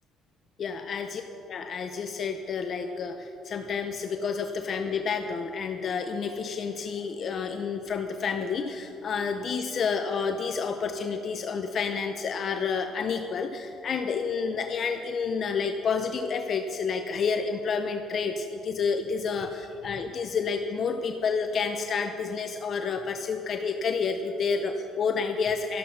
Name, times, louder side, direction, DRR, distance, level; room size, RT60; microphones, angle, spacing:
voice 1, 0.6-1.2 1.5-25.8, left 5 dB, 40° left, 6 dB, 0.6 m, -29 dB
13.0 x 12.5 x 5.9 m, 2.8 s
cardioid pair, 150°, 0 cm